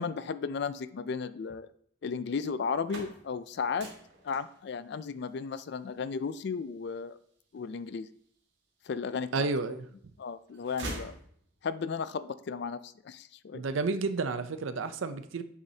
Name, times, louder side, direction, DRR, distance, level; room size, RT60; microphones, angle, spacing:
voice 1, 0.0-1.7 2.0-3.9 4.2-7.2 7.5-8.1 8.9-9.5 10.2-11.2 11.6-13.6, left 5 dB, 55° left, 15 dB, 0.4 m, -34 dB
sound 1, 2.6-8.5 9.1-9.9 10.2-11.8, right 2 dB, 60° right, 1.8 m, -45 dB
voice 2, 9.3-9.9 13.5-15.4, right 4 dB, 80° right, 11 dB, 0.6 m, -31 dB
8.5 x 7.1 x 2.8 m, 0.64 s
head